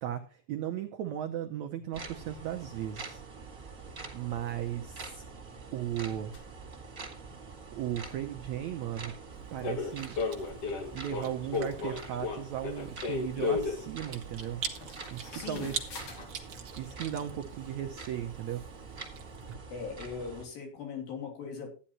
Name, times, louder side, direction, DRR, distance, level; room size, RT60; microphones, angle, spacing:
voice 1, 0.0-3.2 4.1-5.2 5.7-6.3 7.7-9.1 9.5-10.1 10.9-14.6 15.1-15.7 16.8-18.6, right 11 dB, 85° right, 5 dB, 1.6 m, -36 dB
sound 1, 1.9-20.4, right 4 dB, 30° right, 1.9 m, -46 dB
sound 2, 6.3-6.4 9.6-13.8 14.5-14.6 14.8-16.3, left 5 dB, 50° left, 2.4 m, -34 dB
Chewing mastication, 9.3-19.5, right 7 dB, 60° right, 1.3 m, -45 dB
voice 2, 15.3-15.7 19.7-21.7, left 6 dB, 75° left, 2 dB, 4.8 m, -39 dB
14.0 x 10.0 x 3.0 m, 0.37 s
omnidirectional pair, 4.2 m